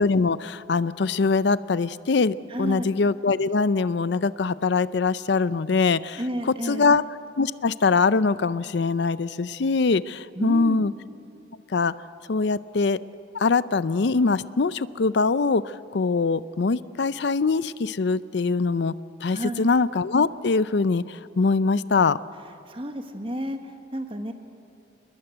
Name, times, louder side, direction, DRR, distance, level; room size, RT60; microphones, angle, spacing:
voice 1, 0.0-6.2 6.7-7.0 7.4-10.9 11.7-11.9 12.3-13.0 13.3-18.9 19.2-22.2, left 4 dB, 70° left, 16 dB, 0.5 m, -23 dB
voice 2, 2.5-2.9 6.1-6.9 10.3-10.8 19.3-19.7 22.7-24.3, equal, 30° right, 6 dB, 1.5 m, -31 dB
28.5 x 21.0 x 7.9 m, 2.5 s
head